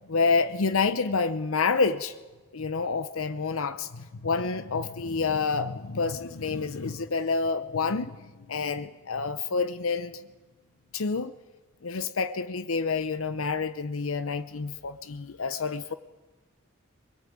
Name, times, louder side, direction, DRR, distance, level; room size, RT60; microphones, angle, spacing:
voice 1, 0.1-2.1 2.5-10.2 10.9-11.3 11.8-15.9, left 4 dB, 90° left, 12 dB, 0.8 m, -28 dB
22.5 x 22.0 x 8.6 m, 1.3 s
head